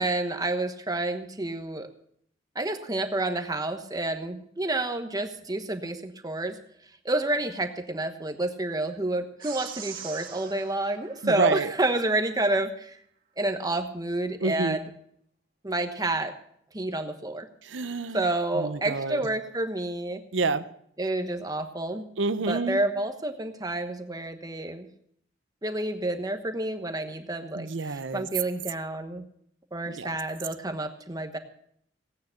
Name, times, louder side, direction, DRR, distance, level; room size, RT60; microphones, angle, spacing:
voice 1, 0.0-1.9 2.5-6.6 7.0-12.9 13.4-14.8 15.6-16.3 16.7-17.5 18.1-20.2 21.0-22.1 22.5-24.9 25.6-27.7 28.1-29.2 29.7-31.4, right 2 dB, 20° right, 6 dB, 1.2 m, -29 dB
sound 1, 9.4-12.1, right 8 dB, 50° right, 2.3 m, -43 dB
voice 2, 11.2-11.7 14.4-14.8 17.6-18.3 18.5-19.3 20.3-20.7 22.2-22.8 27.5-28.3 29.9-30.2, right 3 dB, 85° right, 12 dB, 0.8 m, -28 dB
16.5 x 9.5 x 5.8 m, 0.68 s
head